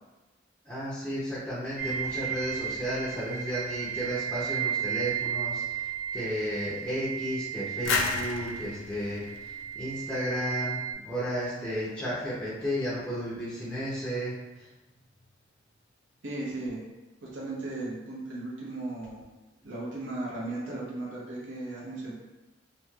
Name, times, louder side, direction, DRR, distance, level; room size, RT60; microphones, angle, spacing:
voice 1, 0.7-5.9 6.1-9.2 9.7-14.3, equal, 5° left, -9 dB, 0.5 m, -33 dB
sound 1, 1.8-10.9, right 9 dB, 50° right, 0.4 m, -34 dB
sound 2, 7.9-10.6, left 4 dB, 85° left, 0.3 m, -32 dB
voice 2, 16.2-16.8 17.2-19.2 19.6-22.1, right 2 dB, 85° right, -5 dB, 0.8 m, -36 dB
3.0 x 2.7 x 2.2 m, 1.1 s
head